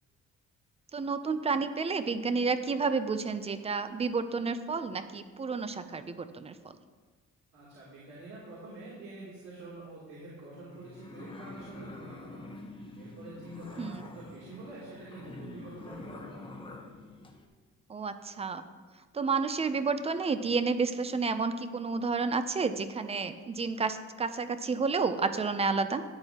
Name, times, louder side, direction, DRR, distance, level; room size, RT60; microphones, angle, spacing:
voice 1, 0.9-6.6 13.8-14.1 17.9-18.6 19.1-26.0, right 4 dB, 20° right, 10 dB, 0.4 m, -30 dB
voice 2, 7.5-16.7, right 2 dB, 65° right, -8 dB, 2.9 m, -47 dB
sound 1, 10.7-17.5, left 3 dB, 15° left, 0.8 m, -46 dB
13.5 x 9.7 x 2.9 m, 1.4 s
cardioid pair, 170°, 29 cm